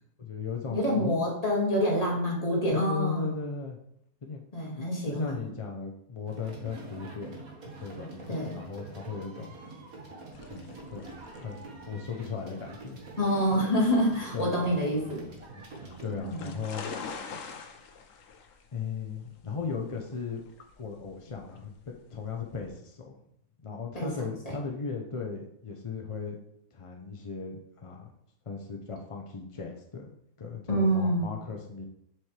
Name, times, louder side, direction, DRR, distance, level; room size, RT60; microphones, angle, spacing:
voice 1, 0.2-1.2 2.7-3.8 4.2-4.4 4.8-9.5 10.5-11.0 11.3-11.6 11.9-13.0 14.3-14.5 16.0-16.8 18.7-20.4 20.8-23.2 23.6-26.4 26.7-28.1 28.5-30.1 30.4-31.9, left 5 dB, 45° left, 1 dB, 0.4 m, -37 dB
voice 2, 0.7-3.3 4.5-5.4 8.3-8.6 13.2-15.3 16.2-16.5 23.9-24.1 24.4-24.5 30.7-31.3, equal, 25° left, -4 dB, 2.1 m, -27 dB
sound 1, 6.3-16.2, right 3 dB, 65° right, 1.9 m, -45 dB
sound 2, 10.3-22.7, left 5 dB, 65° left, 1.1 m, -46 dB
7.3 x 6.2 x 3.3 m, 0.75 s
omnidirectional pair, 1.6 m